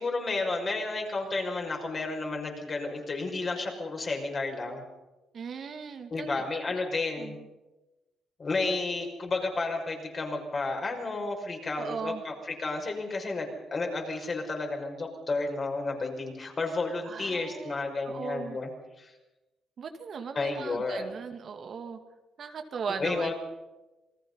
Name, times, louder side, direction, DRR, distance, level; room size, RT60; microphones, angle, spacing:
voice 1, 0.0-4.8 6.1-7.4 8.4-12.3 12.6-18.7 19.0-19.1 20.3-21.2 23.0-23.3, left 3 dB, 40° left, 2 dB, 5.9 m, -32 dB
voice 2, 5.3-6.8 7.2-7.4 11.7-12.2 17.0-17.8 18.0-18.6 19.8-22.0 22.4-23.3, right 6 dB, 55° right, 6 dB, 2.1 m, -38 dB
28.0 x 19.5 x 5.6 m, 1.1 s
cardioid pair, 90°, 0 cm